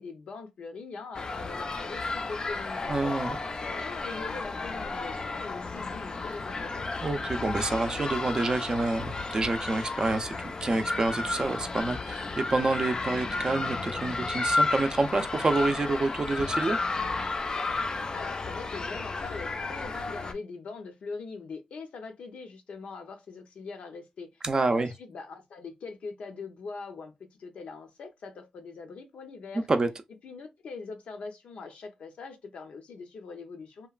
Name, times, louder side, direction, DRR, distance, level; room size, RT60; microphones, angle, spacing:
voice 1, 0.0-3.2 3.6-6.9 18.1-29.7 30.2-33.9, left 4 dB, 80° left, 0.6 m, -42 dB
sound 1, 1.1-20.3, left 3 dB, 40° left, 0.4 m, -33 dB
voice 2, 2.9-3.4 7.0-16.8 24.4-24.9 29.5-29.9, right 2 dB, 40° right, 0.4 m, -28 dB
2.9 x 2.2 x 2.3 m
cardioid pair, 80°, 2 cm